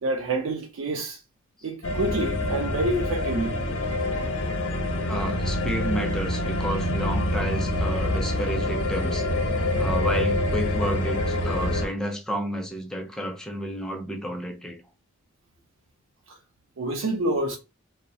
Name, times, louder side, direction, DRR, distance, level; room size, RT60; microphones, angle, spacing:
voice 1, 0.0-1.2 1.6-3.9 16.3-16.4 16.8-17.6, right 2 dB, 80° right, 0.4 m, -28 dB
sound 1, 1.8-11.9, left 1 dB, 65° left, 0.6 m, -26 dB
voice 2, 5.0-9.3 9.8-14.8, equal, 5° left, 0.4 m, -31 dB
2.6 x 2.1 x 2.6 m
head